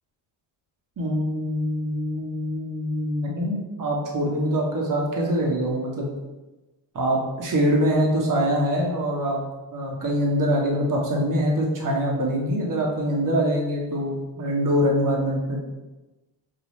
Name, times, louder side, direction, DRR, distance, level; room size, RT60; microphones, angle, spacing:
voice 1, 1.0-6.1 6.9-9.4 9.7-15.6, equal, 45° right, -1 dB, 1.1 m, -24 dB
5.7 x 2.3 x 3.1 m, 1.1 s
cardioid pair, 70°, 45 cm